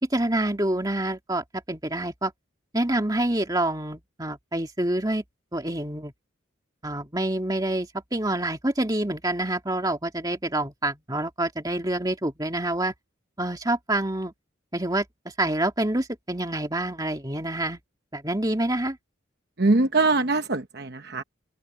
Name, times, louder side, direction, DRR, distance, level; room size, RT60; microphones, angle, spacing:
voice 1, 0.0-2.3 2.7-5.2 5.5-6.1 6.8-12.9 13.4-14.3 14.7-15.1 15.4-17.8 18.1-19.0, right 1 dB, 20° right, 2.5 m, -27 dB
voice 2, 19.6-21.2, right 3 dB, 55° right, 1.0 m, -22 dB
open air
head